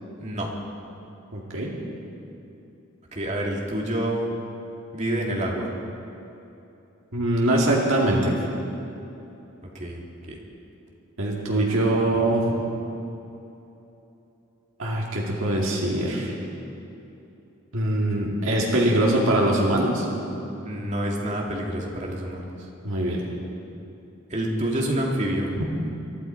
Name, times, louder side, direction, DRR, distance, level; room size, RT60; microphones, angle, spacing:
voice 1, 1.3-1.7 7.1-8.4 11.2-12.6 14.8-16.3 17.7-20.1 22.8-23.2, right 1 dB, 65° right, -3 dB, 2.3 m, -22 dB
voice 2, 3.1-4.3 4.9-5.7 9.7-10.0 10.3-10.4 20.6-22.7 24.3-25.5, right 1 dB, 35° right, -1 dB, 2.3 m, -27 dB
23.0 x 12.5 x 4.6 m, 2.9 s
head